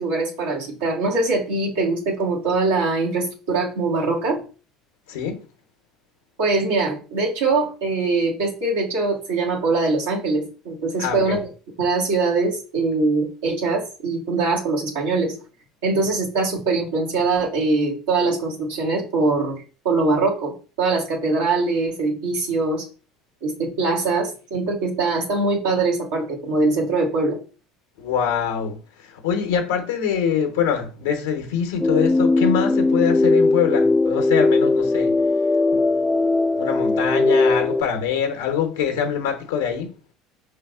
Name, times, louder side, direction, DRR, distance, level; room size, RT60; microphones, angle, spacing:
voice 1, 0.0-4.4 6.4-11.4 11.8-15.3 15.8-22.9 23.4-27.4, right 3 dB, 85° right, 1.5 m, -22 dB
voice 2, 5.1-5.4 11.0-11.4 28.0-35.1 35.9-39.9, left 7 dB, 85° left, 0.8 m, -24 dB
sound 1, 31.8-37.8, left 3 dB, 15° left, 0.3 m, -19 dB
5.2 x 3.4 x 2.3 m
hypercardioid pair, 75°, 0 cm